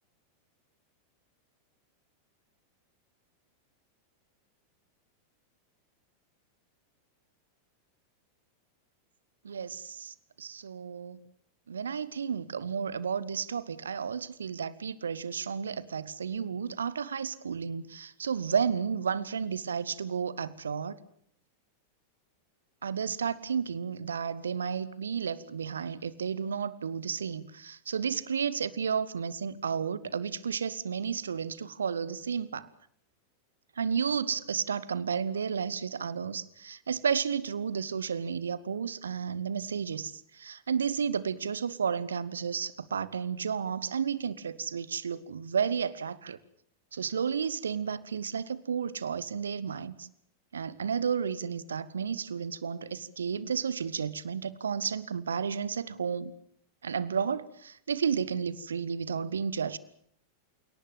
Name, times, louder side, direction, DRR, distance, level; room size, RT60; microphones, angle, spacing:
voice 1, 9.4-11.2 11.7-21.0 22.8-32.7 33.8-46.4 46.9-50.1 50.5-56.3 56.8-59.8, right 6 dB, 70° right, 1.4 m, -32 dB
28.5 x 18.5 x 7.4 m
figure-of-eight pair, 90°, 0 cm